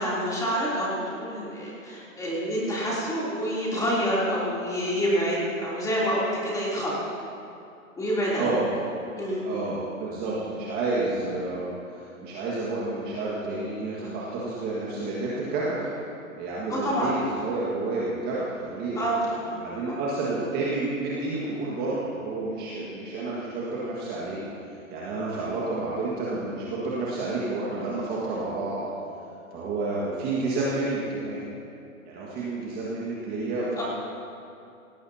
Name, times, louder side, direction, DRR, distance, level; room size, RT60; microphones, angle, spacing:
voice 1, 0.0-6.9 8.0-8.5 9.2-9.6 16.7-17.1 19.0-19.6 19.9-20.0 33.8-33.9, equal, 10° left, -7 dB, 3.2 m, -27 dB
voice 2, 9.4-15.9 16.4-19.0 19.6-24.4 24.9-28.8 29.5-31.4 32.1-33.8, right 2 dB, 20° right, -6 dB, 1.8 m, -30 dB
17.5 x 17.0 x 2.8 m, 2.6 s
hypercardioid pair, 140°, 42 cm